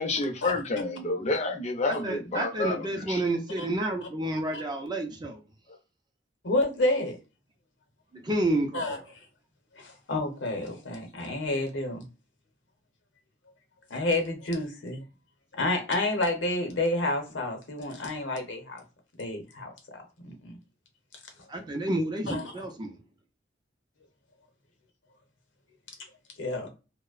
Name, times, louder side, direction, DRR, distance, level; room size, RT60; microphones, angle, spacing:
voice 1, 0.0-3.2, left 2 dB, 35° left, 0.5 m, -29 dB
voice 2, 1.8-5.4 8.1-9.0 21.5-23.0, right 1 dB, 20° right, 0.4 m, -30 dB
voice 3, 6.4-7.2 8.7-9.0 9.8-12.1 13.9-15.0 15.5-18.8 19.2-20.6 22.3-22.4 26.4-26.7, left 2 dB, 70° left, 0.8 m, -29 dB
2.6 x 2.0 x 2.3 m
head